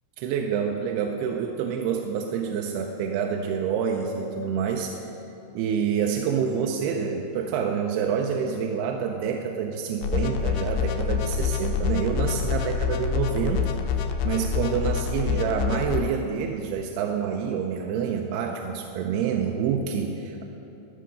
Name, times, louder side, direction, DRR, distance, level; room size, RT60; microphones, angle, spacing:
voice 1, 0.2-5.1 5.5-20.4, right 7 dB, 85° right, 2 dB, 2.4 m, -27 dB
sound 1, 10.0-16.0, left 7 dB, 90° left, 2.7 m, -26 dB
16.0 x 5.7 x 5.1 m, 3.0 s
omnidirectional pair, 4.7 m